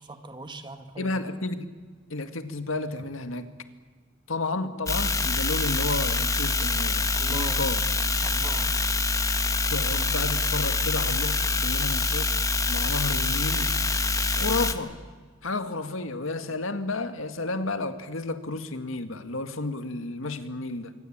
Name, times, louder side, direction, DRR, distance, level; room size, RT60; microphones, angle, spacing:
voice 1, 0.0-1.2 7.2-7.6 8.2-8.8, right 2 dB, 25° right, 7 dB, 2.1 m, -40 dB
voice 2, 1.0-1.7 2.1-3.5 4.3-7.8 9.7-12.3 12.7-13.8 14.3-15.0 15.4-20.9, left 2 dB, 80° left, 8 dB, 2.0 m, -32 dB
sound 1, 4.9-14.7, left 3 dB, 15° left, 1.3 m, -25 dB
26.0 x 24.5 x 8.9 m, 1.5 s
head